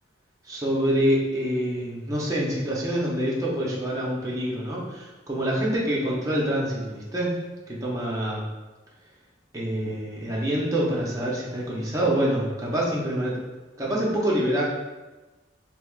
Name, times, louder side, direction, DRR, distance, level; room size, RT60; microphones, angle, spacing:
voice 1, 0.4-7.4 7.7-8.4 9.5-13.4 13.8-14.6, right 1 dB, 15° right, -5 dB, 0.7 m, -26 dB
3.4 x 3.3 x 2.3 m, 1.2 s
head